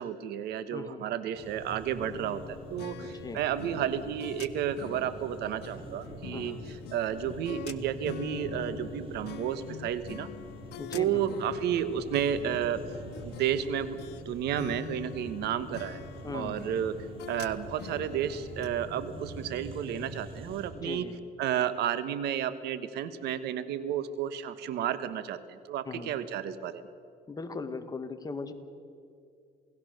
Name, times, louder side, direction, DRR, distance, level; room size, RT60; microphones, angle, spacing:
voice 1, 0.0-6.6 6.9-10.3 10.9-12.8 13.2-14.0 14.2-16.0 16.3-17.0 17.3-21.1 21.4-26.8, right 9 dB, 80° right, 12 dB, 1.4 m, -32 dB
voice 2, 0.7-1.0 3.0-3.4 6.3-6.6 10.8-11.4 16.2-16.6 20.7-21.2 25.8-26.1 27.3-28.5, left 4 dB, 20° left, 7 dB, 1.8 m, -39 dB
sound 1, 1.3-20.7, right 2 dB, 30° right, 5.6 m, -45 dB
sound 2, 2.0-14.2 14.6-18.7, left 12 dB, 80° left, 0.9 m, -45 dB
28.0 x 18.5 x 6.6 m, 2.4 s
cardioid pair, 110°, 17 cm